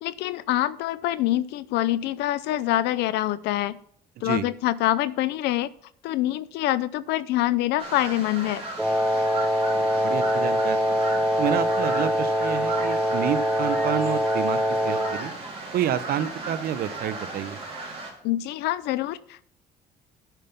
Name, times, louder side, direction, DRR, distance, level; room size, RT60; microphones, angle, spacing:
voice 1, 0.0-3.8 4.2-5.7 6.0-8.6 18.2-19.5, left 14 dB, 85° left, 18 dB, 0.6 m, -25 dB
sound 1, 7.8-18.1, right 3 dB, 35° right, 3.7 m, -36 dB
Wind instrument woodwind instrument, 8.8-15.2, equal, 5° right, 1.1 m, -24 dB
voice 2, 9.7-11.0 11.4-15.3 15.7-17.6, right 10 dB, 65° right, 14 dB, 0.8 m, -29 dB
9.1 x 5.7 x 7.0 m, 0.64 s
cardioid pair, 110°, 17 cm